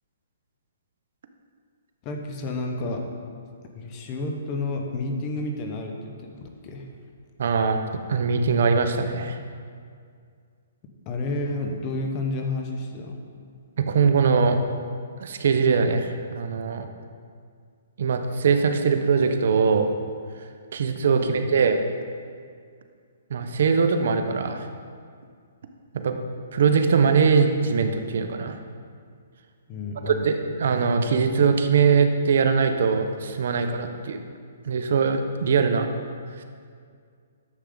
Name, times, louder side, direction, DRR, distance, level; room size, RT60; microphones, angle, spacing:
voice 1, 2.0-3.1 3.7-6.9 11.0-13.2 21.1-21.6 29.7-30.3, left 2 dB, 30° left, 2 dB, 1.1 m, -31 dB
voice 2, 7.4-7.8 8.1-9.4 13.8-14.6 15.2-16.9 18.0-19.9 20.7-21.8 23.3-24.7 25.9-26.1 26.5-28.6 30.0-34.2 34.7-35.9, right 5 dB, 65° right, 7 dB, 0.8 m, -21 dB
10.5 x 7.1 x 3.9 m, 2.1 s
hypercardioid pair, 150°, 0 cm